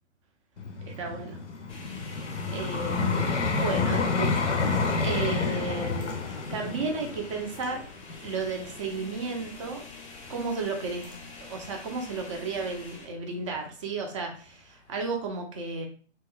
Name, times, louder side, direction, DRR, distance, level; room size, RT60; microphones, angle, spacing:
Vehicle, 0.6-9.6 10.3-10.4, left 4 dB, 85° left, 0.6 m, -29 dB
voice 1, 0.9-1.4 2.1-4.4 5.0-6.2 6.5-7.8 8.2-9.8 10.3-15.9, right 4 dB, 30° right, 2 dB, 0.4 m, -33 dB
sound 1, 1.7-13.1, left 3 dB, 30° left, 0.5 m, -46 dB
2.8 x 2.3 x 2.2 m, 0.43 s
figure-of-eight pair, 120°, 35 cm